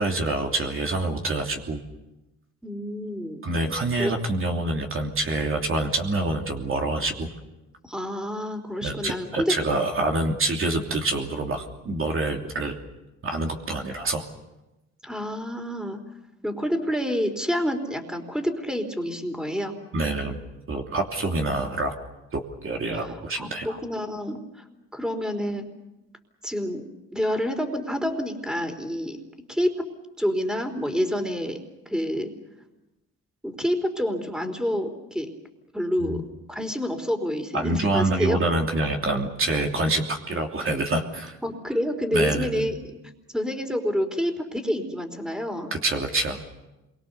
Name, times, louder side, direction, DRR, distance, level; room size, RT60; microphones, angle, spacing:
voice 1, 0.0-1.8 3.4-7.3 8.8-12.8 13.2-14.2 19.9-20.4 20.7-21.9 22.3-23.8 36.0-36.2 37.5-41.4 42.1-42.7 45.8-46.4, right 2 dB, 45° right, 1 dB, 3.1 m, -26 dB
voice 2, 2.6-3.4 4.0-4.1 7.8-9.5 15.0-16.0 16.4-19.8 22.9-23.1 23.4-24.4 24.9-25.6 26.4-26.8 27.1-29.2 29.5-29.7 30.2-31.6 31.9-32.3 33.4-35.3 35.7-36.2 36.5-38.4 41.4-42.7 43.3-45.7, equal, ahead, 5 dB, 4.0 m, -28 dB
27.5 x 23.5 x 7.0 m, 1.0 s
cardioid pair, 90°, 30 cm